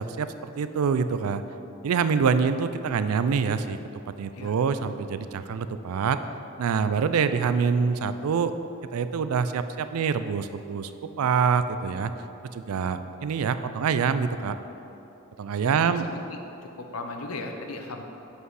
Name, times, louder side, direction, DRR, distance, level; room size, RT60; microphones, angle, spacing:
voice 1, 0.0-1.4 1.8-3.8 4.1-6.2 6.6-8.5 8.9-10.9 11.2-12.1 12.5-14.6 15.4-16.1, right 6 dB, 85° right, 11 dB, 0.4 m, -25 dB
voice 2, 15.6-16.4 16.8-18.0, left 3 dB, 85° left, 4 dB, 0.8 m, -37 dB
8.0 x 5.3 x 4.8 m, 3.0 s
head